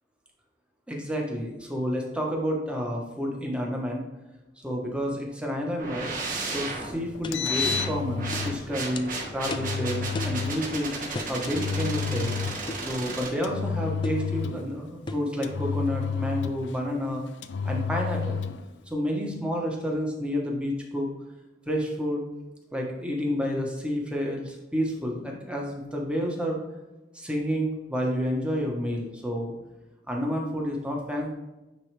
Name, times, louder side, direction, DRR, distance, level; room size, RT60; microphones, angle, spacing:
voice 1, 0.9-4.0 4.6-6.1 6.4-10.9 11.3-12.3 12.8-17.2 17.6-18.4 18.9-21.1 21.7-22.2 22.7-26.6 27.1-29.5 30.1-31.3, equal, 5° right, -1 dB, 1.1 m, -30 dB
sound 1, 5.8-13.3, right 3 dB, 50° right, 1.5 m, -34 dB
sound 2, 6.8-6.9 7.2-7.4 7.8-7.9 8.3-8.5 9.0-9.1 9.5-9.7 10.1-10.4 11.1-11.4 12.7-12.9 14.0-14.3 15.1-15.3, left 2 dB, 25° left, 0.4 m, -35 dB
Engine, 7.1-8.6 9.4-10.6 11.4-12.7 13.4-14.7 15.4-16.8 17.4-18.6, left 6 dB, 85° left, 0.4 m, -30 dB
9.5 x 3.8 x 3.3 m, 1.0 s
head